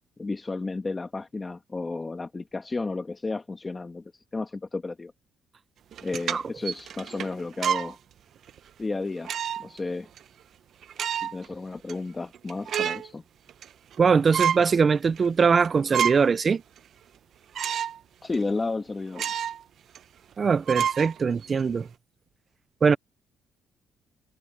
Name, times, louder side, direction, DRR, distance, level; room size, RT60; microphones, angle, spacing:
voice 1, 0.2-5.1 6.0-8.0 8.8-10.1 11.2-13.2 18.2-19.3, left 3 dB, 25° left, 1.4 m, -32 dB
sound 1, 5.9-7.9 8.5-8.6 9.2-9.8 10.2-10.3 10.8-11.5 11.9-12.0 12.3-13.1 13.5-14.0 14.3-14.7 15.2-15.3 15.6-16.4 16.8-16.9 17.5-18.0 18.3-18.4 19.1-19.6 19.9-20.0 20.7-21.6, right 8 dB, 60° right, 0.8 m, -29 dB
voice 2, 14.0-16.6 20.4-21.9 22.8-23.0, right 5 dB, 35° right, 0.4 m, -21 dB
cardioid pair, 105°, 0 cm